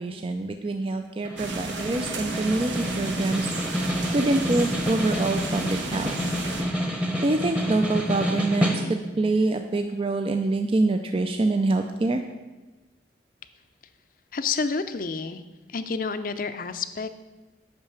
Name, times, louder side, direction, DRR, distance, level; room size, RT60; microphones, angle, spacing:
voice 1, 0.0-3.5 4.1-6.2 7.2-12.2, right 2 dB, 30° right, 6 dB, 0.4 m, -25 dB
Snare drum, 1.2-9.2, equal, 5° right, 0.9 m, -28 dB
sound 1, 1.4-6.6, right 2 dB, 90° right, 1.3 m, -33 dB
voice 2, 14.3-15.4 15.7-17.1, left 4 dB, 50° left, 11 dB, 0.5 m, -29 dB
8.8 x 5.7 x 6.9 m, 1.2 s
head